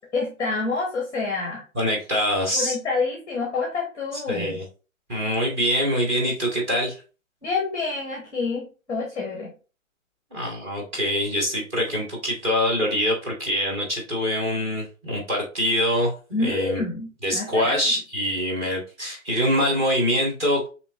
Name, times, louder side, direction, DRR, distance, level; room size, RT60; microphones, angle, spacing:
voice 1, 0.1-1.6 2.5-4.6 7.4-9.5 16.3-17.8, left 3 dB, 5° left, -2 dB, 0.9 m, -28 dB
voice 2, 1.7-2.7 4.3-4.6 5.1-7.0 10.3-16.8 17.2-20.7, equal, 20° right, -1 dB, 1.5 m, -24 dB
7.1 x 3.0 x 2.4 m, 0.33 s
hypercardioid pair, 150°, 40 cm